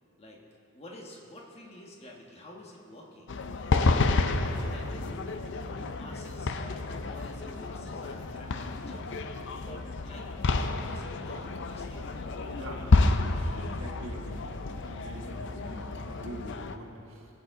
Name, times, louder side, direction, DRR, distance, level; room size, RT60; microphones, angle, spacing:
voice 1, 0.7-3.4 3.8-5.4 5.8-10.3 10.5-13.0, left 1 dB, 30° left, -1 dB, 1.3 m, -49 dB
sound 1, 3.3-16.8, left 3 dB, 55° left, 0.5 m, -30 dB
voice 2, 12.5-14.4 14.9-17.3, right 1 dB, 70° right, 0 dB, 1.5 m, -44 dB
18.0 x 8.2 x 3.7 m, 2.9 s
head